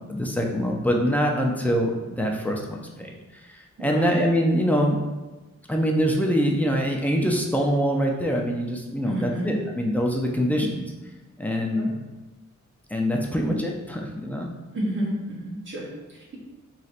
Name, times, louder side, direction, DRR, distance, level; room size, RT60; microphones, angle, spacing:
voice 1, 0.1-3.2 3.4-5.0 5.7-10.8 11.4-11.9 12.9-14.5, equal, 5° left, 0 dB, 0.3 m, -24 dB
voice 2, 3.8-4.3 9.1-9.6 10.4-10.7 11.7-11.9 14.7-16.4, right 1 dB, 40° right, -3 dB, 0.7 m, -31 dB
4.1 x 3.1 x 2.4 m, 1.1 s
wide cardioid pair, 175°, 29 cm